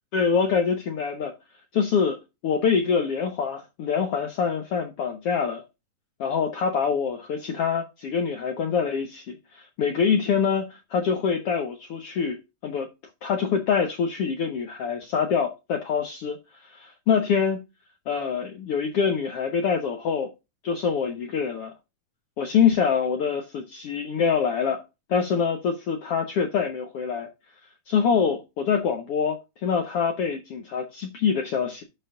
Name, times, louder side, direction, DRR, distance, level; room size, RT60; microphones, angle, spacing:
voice 1, 0.1-1.3 1.7-5.6 6.2-12.9 13.2-16.4 16.6-17.6 18.1-20.3 20.6-21.7 22.4-24.8 25.1-27.3 27.9-31.8, left 6 dB, 85° left, 1.2 m, -25 dB
12.0 x 4.5 x 3.7 m
omnidirectional pair, 4.3 m